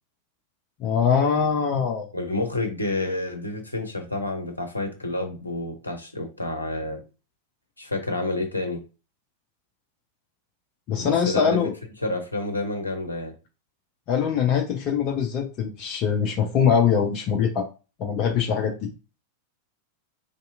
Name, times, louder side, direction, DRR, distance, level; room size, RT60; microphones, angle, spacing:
voice 1, 0.8-2.1 10.9-11.7 14.1-17.7 18.0-18.8, left 7 dB, 40° left, 0.5 m, -22 dB
voice 2, 2.1-7.0 7.8-8.8 11.0-11.7 12.0-13.3, left 2 dB, 85° left, 0.6 m, -29 dB
3.2 x 2.7 x 2.5 m
figure-of-eight pair, 90°, 0 cm